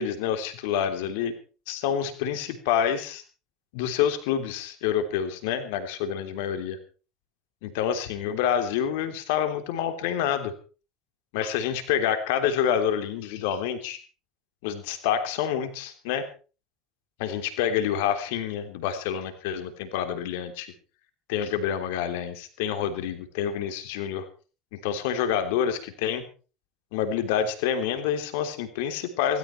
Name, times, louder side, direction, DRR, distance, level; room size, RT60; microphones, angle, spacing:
voice 1, 0.0-1.3 1.7-3.2 3.7-6.8 7.6-10.5 11.3-14.0 14.6-16.3 17.2-20.7 21.3-24.2 24.7-26.3 26.9-29.4, left 9 dB, 80° left, 9 dB, 3.2 m, -27 dB
17.5 x 15.5 x 4.5 m, 0.36 s
hypercardioid pair, 85°, 0 cm